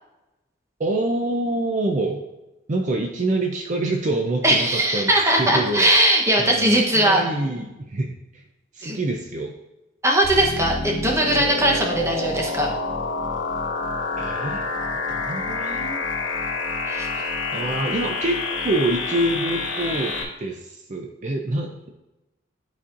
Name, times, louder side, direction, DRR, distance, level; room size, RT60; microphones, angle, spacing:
voice 1, 0.8-2.2 2.7-5.1 5.4-5.9 6.4-8.4 8.7-9.5 11.4-11.6 14.2-14.7 15.1-16.0 17.1-18.4 18.6-20.1 20.4-21.9, right 2 dB, 40° right, 2 dB, 0.5 m, -26 dB
voice 2, 4.4-7.2 8.8-9.0 10.0-12.7 16.9-17.1, right 1 dB, 15° right, 0 dB, 0.9 m, -19 dB
sound 1, 10.2-20.2, left 3 dB, 80° left, 1.1 m, -28 dB
11.0 x 4.2 x 2.5 m, 0.99 s
head